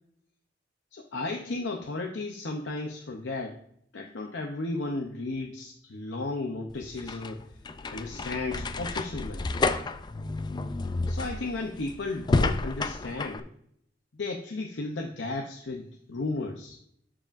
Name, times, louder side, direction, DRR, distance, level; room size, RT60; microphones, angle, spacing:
voice 1, 0.9-3.6 3.9-7.4 7.9-9.5 11.1-13.5 14.1-16.8, left 2 dB, 80° left, 2 dB, 0.7 m, -34 dB
sound 1, 6.7-13.4, left 3 dB, 25° left, 0.4 m, -30 dB
12.0 x 4.9 x 2.5 m, 0.70 s
head